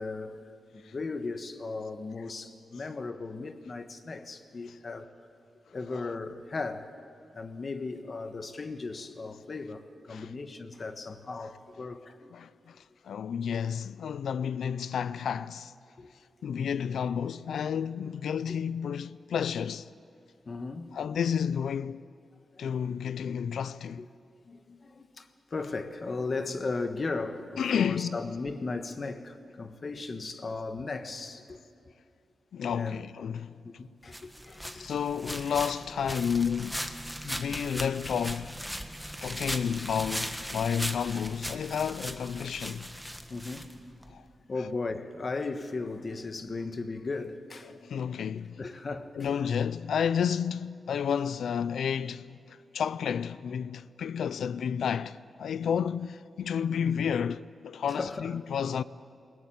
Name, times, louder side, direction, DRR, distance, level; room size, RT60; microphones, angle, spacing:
voice 1, 0.0-5.1 5.7-6.9 7.3-12.3 16.0-16.1 18.5-18.6 20.4-21.0 22.5-22.7 24.0-24.1 24.4-31.6 32.7-33.1 33.6-34.9 43.2-43.7 44.5-47.9 48.6-49.4 57.9-58.3, left 3 dB, 45° left, 1.4 m, -37 dB
voice 2, 12.3-12.7 13.0-15.7 16.4-19.9 20.9-22.0 22.6-24.1 27.6-28.4 32.5-33.6 34.7-36.9 37.2-38.6 39.2-43.0 44.1-44.2 44.5-44.7 47.6-48.6 49.1-58.8, left 7 dB, 80° left, 0.5 m, -31 dB
sound 1, 34.1-44.1, equal, ahead, 1.5 m, -38 dB
21.0 x 17.5 x 8.8 m
cardioid pair, 70°, 0 cm